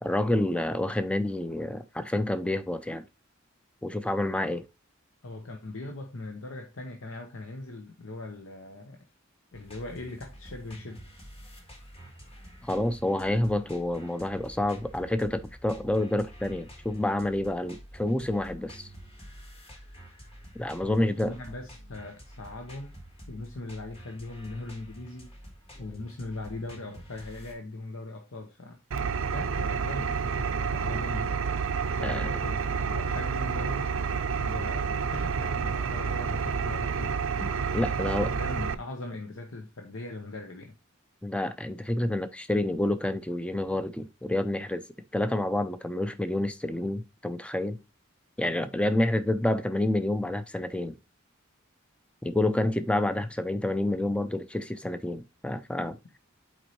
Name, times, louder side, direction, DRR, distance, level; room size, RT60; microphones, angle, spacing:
voice 1, 0.0-3.0 3.8-4.6 12.6-18.9 20.5-21.3 32.0-32.3 37.4-38.3 41.2-44.8 45.1-47.8 48.4-51.0 52.2-56.0, left 1 dB, 5° left, 0.4 m, -28 dB
voice 2, 5.2-9.0 9.5-11.0 20.8-23.0 23.3-25.3 25.8-28.8 29.3-31.4 32.0-33.9 34.3-37.2 37.8-40.7, left 2 dB, 75° left, 0.9 m, -40 dB
sound 1, 9.5-27.5, equal, 30° left, 1.6 m, -48 dB
Engine, 28.9-38.7, right 5 dB, 75° right, 0.5 m, -29 dB
8.0 x 4.4 x 3.0 m
head